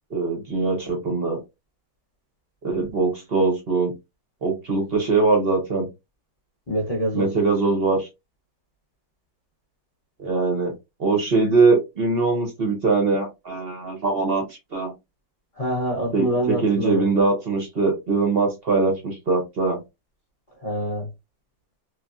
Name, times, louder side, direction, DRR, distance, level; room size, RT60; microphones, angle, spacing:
voice 1, 0.1-1.4 2.6-3.9 4.4-5.9 7.1-8.1 10.2-10.7 11.0-14.4 14.7-14.9 16.1-19.8, right 3 dB, 55° right, 0.6 m, -22 dB
voice 2, 6.7-7.3 15.6-17.1 20.6-21.1, equal, 40° left, 0.5 m, -25 dB
3.2 x 2.3 x 2.3 m
omnidirectional pair, 2.0 m